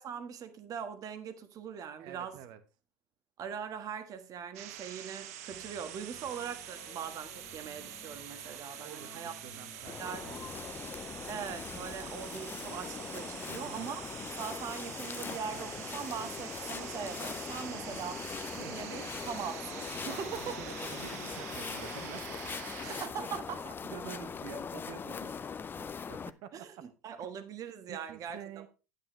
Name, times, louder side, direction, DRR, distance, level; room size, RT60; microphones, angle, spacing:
voice 1, 0.0-2.4 3.4-9.3 10.0-10.3 11.3-14.0 14.4-18.1 18.6-20.5 22.8-23.7 26.5-28.7, right 7 dB, 45° right, 1.5 m, -41 dB
voice 2, 2.0-2.6 6.2-6.4 8.8-10.8 13.4-13.9 17.6-18.2 18.5-18.8 20.1-22.4 23.8-26.7 27.9-28.7, right 11 dB, 60° right, 1.2 m, -48 dB
sound 1, 4.5-23.1, right 11 dB, 80° right, 0.9 m, -46 dB
sound 2, 5.5-19.5, left 6 dB, 65° left, 2.0 m, -54 dB
sound 3, 9.9-26.3, left 6 dB, 25° left, 0.5 m, -41 dB
9.8 x 8.7 x 3.2 m
hypercardioid pair, 80°, 8 cm